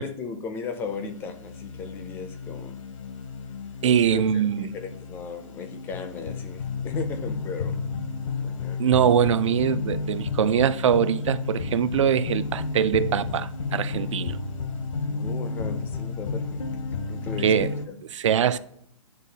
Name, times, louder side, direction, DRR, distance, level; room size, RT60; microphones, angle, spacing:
voice 1, 0.0-2.8 4.1-7.8 8.4-8.8 15.1-16.6 17.1-18.0 18.4-18.5, left 5 dB, 10° left, 0.4 m, -36 dB
sound 1, 0.7-17.9, left 4 dB, 80° left, 0.7 m, -32 dB
voice 2, 3.8-4.7 8.8-14.4 17.4-17.7 18.1-18.6, right 8 dB, 70° right, 0.4 m, -22 dB
9.5 x 3.7 x 2.7 m
hypercardioid pair, 150°, 17 cm